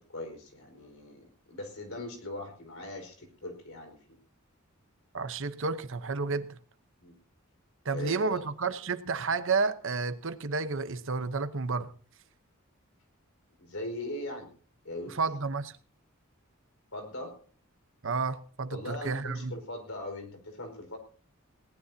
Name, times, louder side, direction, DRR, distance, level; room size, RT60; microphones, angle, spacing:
voice 1, 0.0-4.2 7.0-7.1 7.9-8.4 13.6-14.5 14.8-15.2 16.9-17.3 18.7-21.0, left 1 dB, 70° left, 5.0 m, -40 dB
voice 2, 5.1-6.6 7.8-11.9 15.1-15.8 18.0-19.5, right 4 dB, 65° right, 1.0 m, -31 dB
20.0 x 18.0 x 2.8 m
head